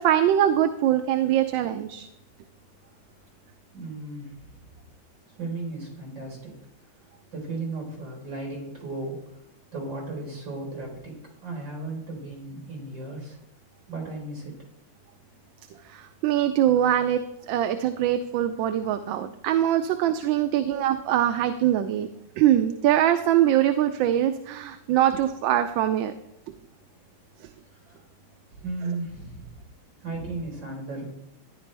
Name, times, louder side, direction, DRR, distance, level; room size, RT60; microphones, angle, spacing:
voice 1, 0.0-2.1 15.8-17.2 17.5-22.1 22.4-26.1, right 11 dB, 80° right, 8 dB, 1.3 m, -23 dB
voice 2, 3.7-4.7 5.3-6.5 7.3-9.2 9.7-11.1 11.4-13.4 13.9-14.5 20.6-20.7 26.6-26.7 27.6-28.0 28.5-29.6 30.0-31.1, right 2 dB, 65° right, -1 dB, 4.8 m, -35 dB
14.0 x 10.5 x 3.4 m, 0.84 s
omnidirectional pair, 2.1 m